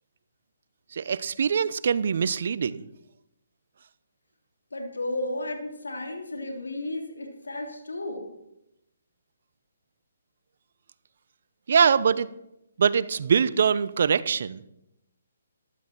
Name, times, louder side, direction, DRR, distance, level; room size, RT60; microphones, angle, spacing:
voice 1, 0.9-2.9 11.7-12.3 12.8-14.6, right 6 dB, 60° right, 17 dB, 0.8 m, -23 dB
voice 2, 4.7-8.3, left 1 dB, 90° left, 2 dB, 3.4 m, -33 dB
14.5 x 12.0 x 6.0 m, 0.84 s
hypercardioid pair, 145°, 0 cm